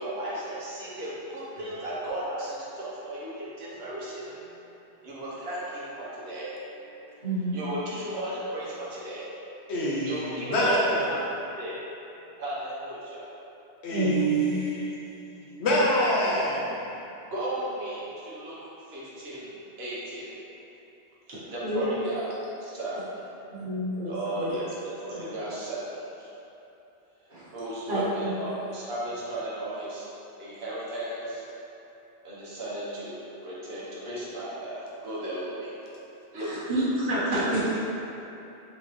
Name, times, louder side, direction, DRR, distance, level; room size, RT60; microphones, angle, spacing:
voice 1, 0.0-4.4 5.0-6.5 7.5-9.3 10.0-11.8 12.4-13.3 17.3-18.6 18.9-20.3 21.3-22.3 22.6-23.2 24.1-26.3 27.5-30.1 30.4-31.4 32.2-35.7 36.3-36.7 37.3-37.7, right 1 dB, 70° right, -7 dB, 1.2 m, -35 dB
voice 2, 7.2-7.7 13.9-14.6 21.3-21.8 23.5-24.5 25.2-25.3 27.3-27.5 27.9-28.3 36.3-37.6, right 1 dB, 55° right, -11 dB, 1.4 m, -29 dB
voice 3, 9.7-11.0 13.8-14.8 15.3-16.8, equal, 90° left, -5 dB, 1.1 m, -26 dB
4.0 x 3.5 x 3.1 m, 2.9 s
omnidirectional pair, 1.1 m